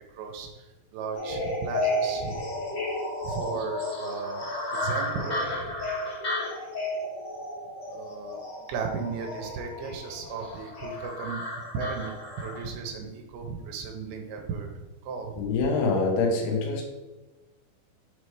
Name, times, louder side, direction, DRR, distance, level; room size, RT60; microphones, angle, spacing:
voice 1, 0.1-2.4 3.2-4.5 4.7-5.8 7.9-8.4 8.7-11.4 11.7-14.7 15.0-15.4, right 5 dB, 85° right, 3 dB, 2.5 m, -35 dB
sound 1, 1.2-12.7, left 1 dB, 45° left, 1.0 m, -33 dB
voice 2, 15.4-16.8, left 3 dB, 90° left, 1 dB, 3.0 m, -25 dB
6.7 x 3.2 x 4.7 m, 1.1 s
omnidirectional pair, 4.5 m